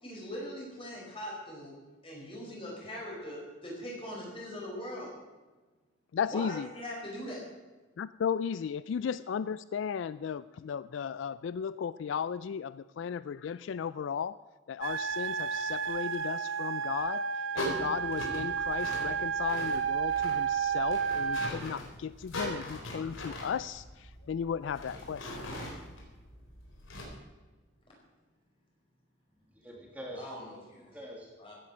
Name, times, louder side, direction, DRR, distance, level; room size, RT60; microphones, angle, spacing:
voice 1, 0.0-1.8 2.0-5.1 6.3-7.4 30.2-30.4 30.7-30.9 31.4-31.5, equal, 25° left, -3 dB, 5.0 m, -41 dB
voice 2, 6.1-6.7 8.0-14.4 14.7-17.2 17.5-25.6, left 7 dB, 70° left, 17 dB, 0.3 m, -35 dB
sound 1, 14.8-21.5, right 7 dB, 80° right, 0.7 m, -32 dB
sound 2, 17.6-27.0, left 1 dB, 90° left, 4.0 m, -41 dB
voice 3, 29.3-31.5, equal, 10° right, -1 dB, 2.2 m, -46 dB
15.5 x 10.0 x 6.2 m, 1.3 s
head